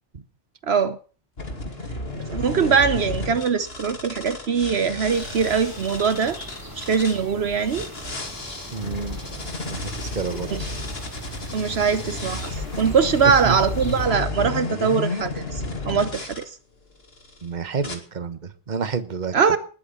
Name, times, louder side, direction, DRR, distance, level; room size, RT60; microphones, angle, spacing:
voice 1, 0.6-1.0 2.3-6.4 6.8-7.9 10.5-10.6 11.5-16.4 19.3-19.6, right 6 dB, 65° right, 1.2 m, -22 dB
sound 1, 1.4-7.2 7.7-16.4 17.1-17.4 17.8-18.0, left 2 dB, 60° left, 2.8 m, -32 dB
sound 2, 5.1-14.1, equal, 20° right, 4.0 m, -41 dB
voice 2, 8.7-9.2 9.7-10.5 13.2-13.6 17.4-19.6, right 5 dB, 40° right, 1.3 m, -29 dB
20.0 x 8.7 x 6.9 m
omnidirectional pair, 1.2 m